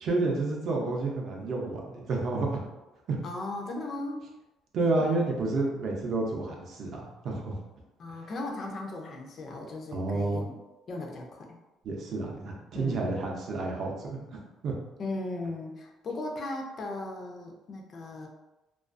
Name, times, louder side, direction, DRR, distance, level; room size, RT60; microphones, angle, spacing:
voice 1, 0.0-2.6 3.1-3.2 4.7-6.9 7.2-7.5 9.9-10.4 11.8-14.2 14.6-14.7, right 3 dB, 50° right, -1 dB, 0.5 m, -30 dB
voice 2, 3.2-4.2 4.9-5.3 8.0-10.6 10.9-11.6 12.7-13.1 15.0-18.3, left 2 dB, 35° left, 1 dB, 0.4 m, -37 dB
2.3 x 2.3 x 2.4 m, 1.0 s
cardioid pair, 160°, 0 cm